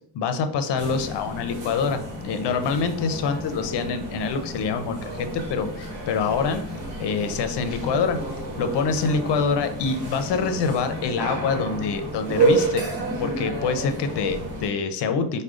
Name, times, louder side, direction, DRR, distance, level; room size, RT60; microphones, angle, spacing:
voice 1, 0.1-6.6 7.0-8.2 8.6-12.8 13.2-15.4, left 5 dB, 70° left, 8 dB, 0.6 m, -25 dB
sound 1, 0.8-14.7, right 2 dB, 65° right, 1.1 m, -30 dB
4.8 x 2.2 x 2.4 m, 0.63 s
cardioid pair, 85°, 43 cm